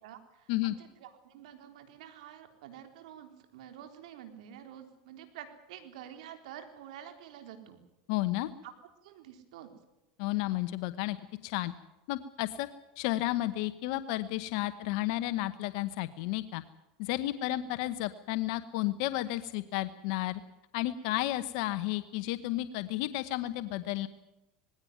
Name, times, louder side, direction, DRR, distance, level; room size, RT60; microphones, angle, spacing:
voice 1, 0.0-7.8 8.6-8.7 9.0-9.7 17.4-17.6, right 10 dB, 80° right, 7 dB, 3.8 m, -49 dB
voice 2, 8.1-8.5 10.2-11.2 11.4-11.7 12.1-12.7 13.0-16.6 17.0-20.4 20.7-24.1, left 16 dB, 70° left, 12 dB, 1.0 m, -32 dB
20.5 x 16.5 x 9.4 m, 0.96 s
supercardioid pair, 115°, 4 cm